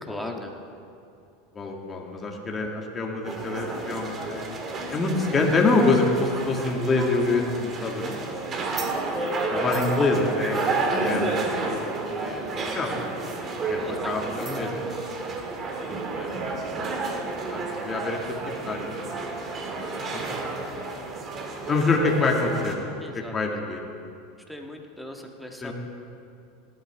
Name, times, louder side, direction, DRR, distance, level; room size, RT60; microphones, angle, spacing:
voice 1, 0.0-0.5 12.7-12.9 13.7-14.8 19.4-19.7 23.0-23.7 24.5-25.7, left 1 dB, ahead, 1 dB, 1.6 m, -40 dB
voice 2, 1.5-4.6 4.9-8.2 9.5-10.6 11.0-11.4 11.7-11.8 12.1-12.4 12.7-14.7 16.2-16.3 17.4-18.2 18.4-19.9 20.1-20.5 21.7-22.9 23.1-23.8 25.6-25.7, left 3 dB, 25° left, 0 dB, 2.2 m, -26 dB
sound 1, 3.2-22.7, right 3 dB, 30° right, 2.0 m, -31 dB
18.5 x 12.0 x 3.7 m, 2.5 s
supercardioid pair, 110°, 0 cm